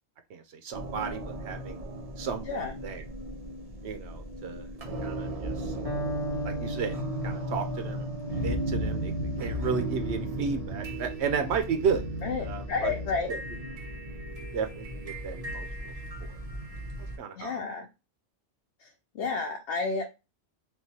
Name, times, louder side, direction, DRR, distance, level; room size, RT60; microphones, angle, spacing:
voice 1, 0.3-1.8 2.2-3.0 3.8-4.7 5.0-5.7 6.4-7.0 7.2-9.1 9.4-12.0 12.4-12.9 13.3-13.4 14.4-15.9 16.2-16.4 17.0-17.6, right 6 dB, 80° right, 7 dB, 0.9 m, -33 dB
sound 1, 0.7-17.2, right 1 dB, 40° right, 0.7 m, -36 dB
Electric guitar, 5.8-13.7, right 1 dB, 25° right, 1.3 m, -38 dB
voice 2, 12.2-13.4 17.4-17.9 19.1-20.0, left 4 dB, 80° left, 2 dB, 0.9 m, -31 dB
3.7 x 2.8 x 2.8 m, 0.26 s
omnidirectional pair, 1.1 m